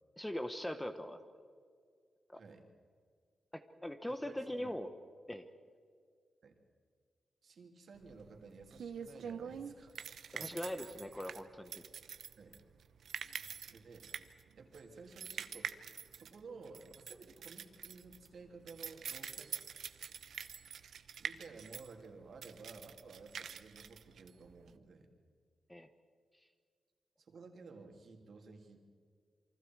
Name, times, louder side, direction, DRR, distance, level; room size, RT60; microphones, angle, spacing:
voice 1, 0.2-1.2 2.3-2.4 3.5-4.9 5.3-5.5 10.3-11.8 25.7-25.9, left 1 dB, 10° left, 8 dB, 1.0 m, -41 dB
voice 2, 2.3-2.6 4.1-4.8 6.4-6.6 7.4-11.1 12.4-12.6 13.7-14.1 14.5-15.7 16.1-19.6 21.2-25.1 27.2-28.8, right 4 dB, 55° right, 3 dB, 2.9 m, -54 dB
sound 1, 8.0-24.7, right 7 dB, 70° right, 1.0 m, -46 dB
28.0 x 24.5 x 4.7 m, 2.1 s
wide cardioid pair, 145°, 0 cm